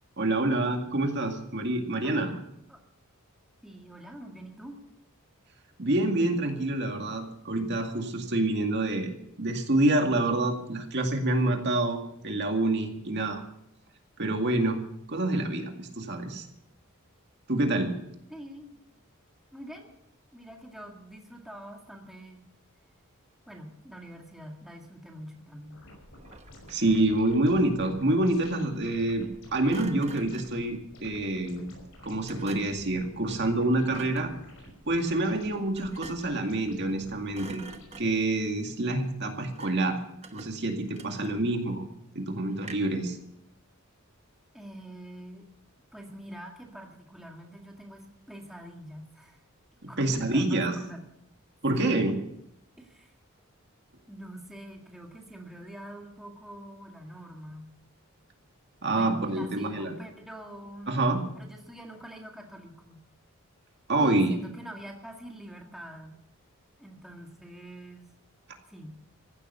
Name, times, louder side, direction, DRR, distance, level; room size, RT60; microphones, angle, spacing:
voice 1, 0.2-2.3 5.8-9.1 9.4-13.4 14.2-14.8 15.1-16.5 17.5-17.9 26.7-31.6 32.0-34.3 34.9-37.6 38.0-40.0 40.3-41.8 42.1-43.2 50.0-50.7 51.6-52.1 58.8-60.0 60.9-61.2 63.9-64.4, right 2 dB, 50° right, 3 dB, 2.1 m, -27 dB
voice 2, 3.6-4.8 18.3-18.8 19.5-19.9 20.3-22.5 23.5-25.8 44.5-45.5 45.9-49.4 49.9-51.0 51.7-52.0 52.8-53.2 54.1-57.8 58.9-61.0 61.3-63.0 64.0-66.2 66.8-68.1 68.7-69.0, right 1 dB, ahead, 0 dB, 2.0 m, -45 dB
sound 1, 25.7-38.0, left 1 dB, 65° left, 5.6 m, -51 dB
Thump thud, 26.1-27.0 29.7-30.6 32.3-32.9 33.9-34.3 35.7-36.4 36.8-37.0 37.3-38.3 39.5-39.9 40.2-41.6 42.6-43.1, right 3 dB, 30° right, 1.1 m, -47 dB
15.5 x 12.0 x 6.8 m, 0.76 s
head